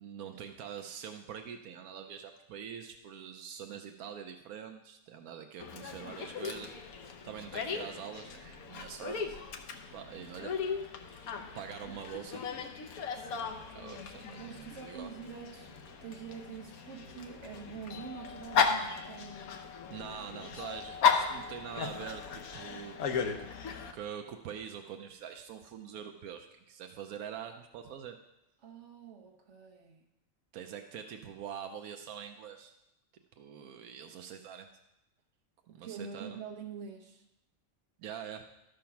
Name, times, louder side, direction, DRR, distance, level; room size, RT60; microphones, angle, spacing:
voice 1, 0.0-6.7 7.2-9.4 9.9-10.6 11.1-11.3 11.5-12.5 13.7-15.1 19.9-23.0 23.4-23.5 23.9-28.2 30.5-32.8 33.4-34.7 35.7-36.4 38.0-38.4, right 8 dB, 85° right, 6 dB, 1.1 m, -44 dB
Dog, 5.6-23.9, left 6 dB, 90° left, 1.3 m, -36 dB
voice 2, 13.1-13.7 14.4-19.6 28.6-30.0 35.7-37.2, right 6 dB, 55° right, 2 dB, 1.4 m, -46 dB
12.5 x 5.2 x 5.8 m, 0.89 s
omnidirectional pair, 1.5 m